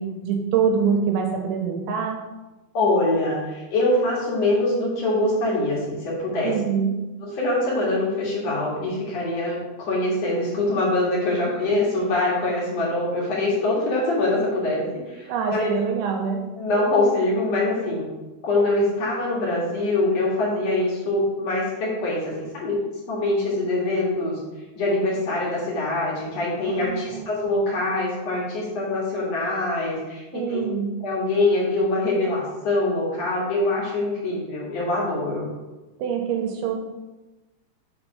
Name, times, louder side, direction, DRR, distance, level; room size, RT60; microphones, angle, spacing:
voice 1, 0.0-2.2 6.4-7.0 11.6-11.7 15.3-16.4 26.7-27.3 30.3-30.9 36.0-36.8, right 6 dB, 85° right, 2 dB, 3.0 m, -25 dB
voice 2, 2.7-6.5 7.2-15.8 16.6-18.0 18.4-22.8 23.1-24.3 24.8-30.6 31.0-35.5, left 2 dB, 50° left, -5 dB, 2.0 m, -24 dB
7.3 x 3.5 x 5.7 m, 1.1 s
omnidirectional pair, 5.5 m